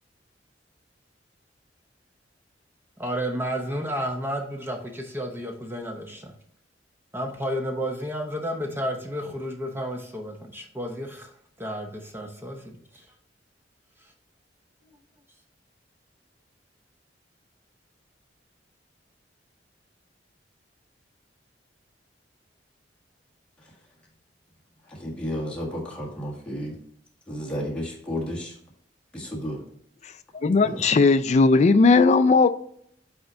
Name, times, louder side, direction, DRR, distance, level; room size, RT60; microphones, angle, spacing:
voice 1, 3.0-6.3 7.1-11.3 11.6-13.0, equal, 15° right, 0.8 m, -31 dB
voice 2, 25.0-26.7 27.3-28.5 29.1-29.6 30.6-30.8, equal, 5° left, 1.5 m, -32 dB
voice 3, 30.3-32.5, left 4 dB, 40° left, 0.4 m, -17 dB
5.6 x 4.3 x 3.9 m
head